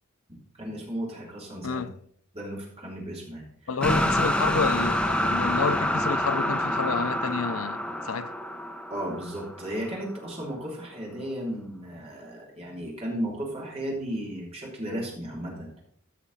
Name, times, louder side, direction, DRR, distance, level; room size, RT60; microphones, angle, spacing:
voice 1, 0.6-1.8 2.3-3.8 8.9-15.7, equal, 30° right, 3.1 m, -35 dB
voice 2, 3.7-7.8 8.0-8.3, left 5 dB, 70° left, 0.5 m, -29 dB
sound 1, 3.8-9.9, equal, 5° left, 0.8 m, -27 dB
14.5 x 5.9 x 4.1 m
head